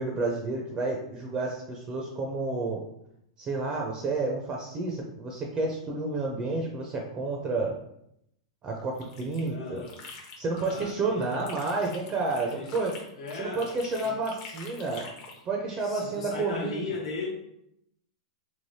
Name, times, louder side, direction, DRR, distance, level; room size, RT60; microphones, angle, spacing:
voice 1, 0.0-2.8 3.4-7.8 8.6-9.8 10.4-13.0 13.4-15.2 15.5-16.8, right 3 dB, 25° right, 0 dB, 0.5 m, -30 dB
sound 1, 8.8-10.9 11.2-15.4, left 4 dB, 45° left, 0.7 m, -46 dB
voice 2, 9.4-10.0 10.5-11.4 12.4-12.9 13.2-13.8 14.0-14.2 15.8-17.3, left 4 dB, 80° left, -1 dB, 1.0 m, -37 dB
3.2 x 2.9 x 2.7 m, 0.77 s
hypercardioid pair, 135°, 3 cm